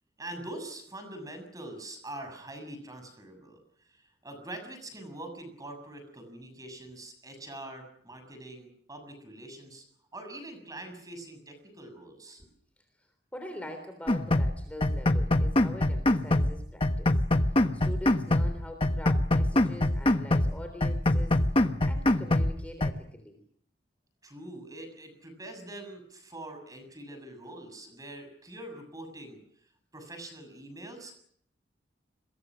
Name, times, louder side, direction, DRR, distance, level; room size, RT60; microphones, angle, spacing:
voice 1, 0.2-3.6 3.9-9.8 10.1-12.4 24.2-29.4 29.9-31.2, right 1 dB, 20° right, 7 dB, 7.0 m, -44 dB
voice 2, 13.0-17.2 17.5-21.4 21.8-23.4, equal, 10° left, 5 dB, 3.5 m, -44 dB
sound 1, 14.1-14.5 14.8-16.5 16.8-18.5 18.8-20.5 20.8-22.5 22.8-22.9, left 1 dB, 30° left, 1.2 m, -24 dB
29.5 x 22.5 x 6.3 m, 0.64 s
head